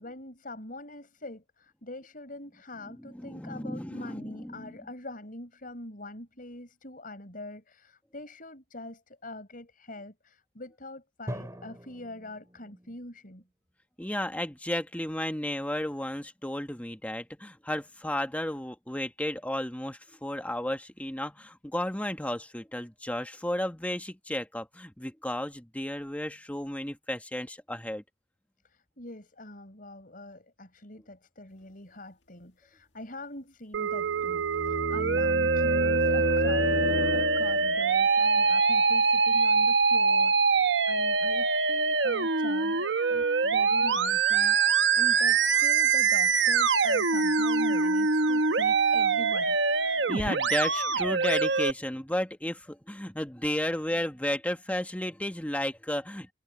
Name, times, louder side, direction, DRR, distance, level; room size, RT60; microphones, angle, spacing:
voice 1, 0.0-13.4 28.6-49.6, left 1 dB, 50° left, 7.2 m, -43 dB
voice 2, 3.0-4.8 14.0-28.0 50.1-56.3, left 1 dB, 10° left, 1.5 m, -33 dB
Drum, 11.3-13.2, equal, 15° right, 5.6 m, -42 dB
Musical instrument, 33.7-51.7, right 4 dB, 70° right, 1.0 m, -24 dB
sound 1, 33.9-37.8, left 1 dB, 75° left, 1.8 m, -32 dB
head